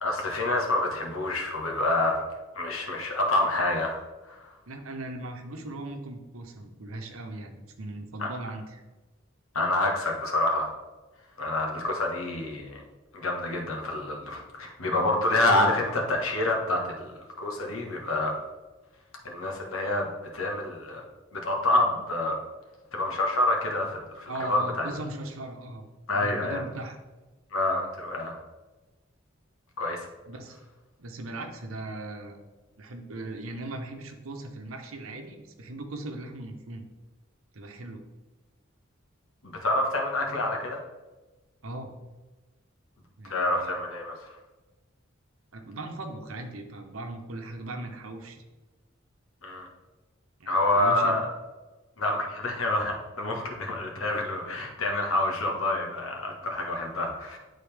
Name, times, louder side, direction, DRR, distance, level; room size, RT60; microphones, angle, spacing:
voice 1, 0.0-2.2 2.5-4.0 4.3-4.5 8.2-8.3 9.5-10.7 11.4-12.8 13.1-18.3 19.2-20.1 20.3-21.0 21.3-22.4 22.9-24.9 26.1-26.6 27.5-28.4 29.8-30.1 39.4-40.8 43.3-44.3 49.4-49.7 50.5-51.2 52.0-57.4, left 2 dB, 80° left, 1 dB, 1.3 m, -27 dB
voice 2, 4.7-8.8 24.3-25.8 26.1-27.0 30.3-30.6 31.0-32.4 32.8-36.9 37.5-38.0 41.6-41.9 43.2-43.8 45.5-48.4 50.4-51.2, right 2 dB, 90° right, 5 dB, 0.9 m, -38 dB
8.9 x 4.0 x 3.3 m, 1.2 s
head